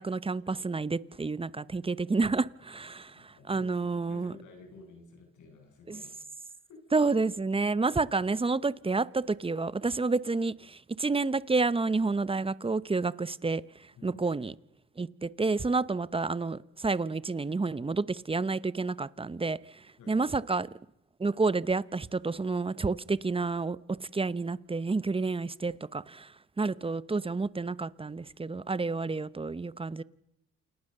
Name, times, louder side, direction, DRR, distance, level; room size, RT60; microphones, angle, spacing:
voice 1, 0.0-4.3 5.9-6.0 6.9-14.5 15.0-20.7 21.2-26.3 26.6-30.0, right 3 dB, 20° right, 0.8 m, -30 dB
voice 2, 3.1-6.1 6.7-7.0 14.0-14.3 20.0-20.2, left 3 dB, 75° left, 7.9 m, -52 dB
28.5 x 19.0 x 6.7 m
cardioid pair, 90°, 30 cm